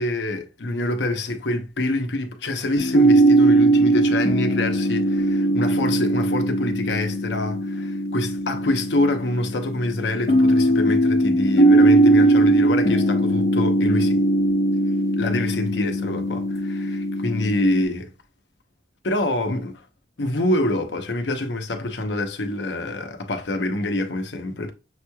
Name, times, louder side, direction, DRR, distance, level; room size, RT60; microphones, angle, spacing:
voice 1, 0.0-14.2 15.1-18.1 19.0-19.8 20.2-24.7, left 1 dB, 85° left, 0.8 m, -26 dB
sound 1, 2.8-17.8, right 1 dB, 60° left, 1.0 m, -20 dB
6.4 x 3.1 x 2.2 m
head